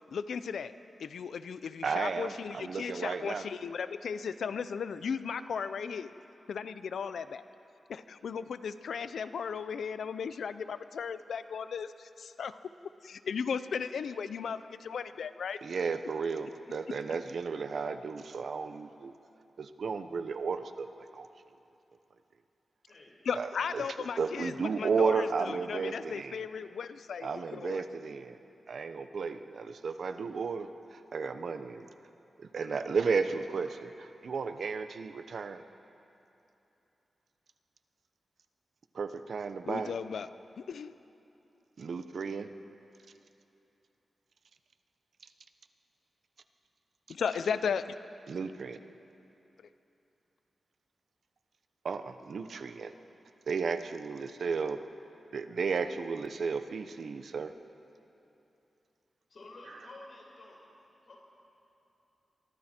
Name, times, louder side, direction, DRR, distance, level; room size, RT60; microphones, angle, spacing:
voice 1, 0.1-0.7 1.0-6.1 6.5-7.5 7.9-12.6 13.0-15.6 23.2-27.8 39.6-40.3 40.6-40.9 47.1-47.8, left 6 dB, 90° left, 12 dB, 0.7 m, -36 dB
voice 2, 1.8-3.4 15.6-19.1 19.6-20.9 21.1-21.3 23.3-23.5 23.7-23.8 24.2-26.4 27.2-28.4 28.7-31.9 32.4-35.6 38.9-39.9 41.8-42.5 48.3-48.8 51.8-52.9 53.5-54.8 55.3-57.5, right 5 dB, 60° right, 9 dB, 0.9 m, -33 dB
voice 3, 59.3-60.6 61.1-61.2, left 2 dB, 50° left, -2 dB, 4.9 m, -50 dB
27.5 x 23.5 x 4.5 m, 2.8 s
wide cardioid pair, 170°, 0 cm